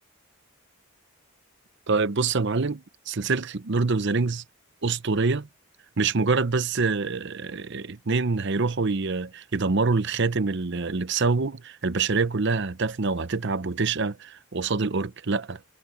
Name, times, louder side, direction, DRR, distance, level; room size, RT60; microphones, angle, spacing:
voice 1, 1.9-4.4 4.8-5.5 6.0-15.6, right 4 dB, 55° right, 0.8 m, -25 dB
head